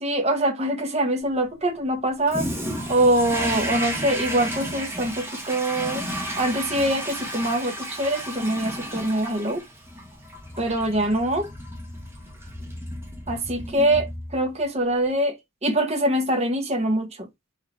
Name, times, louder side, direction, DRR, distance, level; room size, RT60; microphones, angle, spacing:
voice 1, 0.0-2.5 2.9-6.0 6.4-9.6 10.6-11.5 13.3-15.4 15.6-17.3, right 1 dB, 30° right, 1.0 m, -24 dB
Toilet flush, 2.3-14.6, equal, 10° right, 1.3 m, -33 dB
4.2 x 2.7 x 4.3 m
head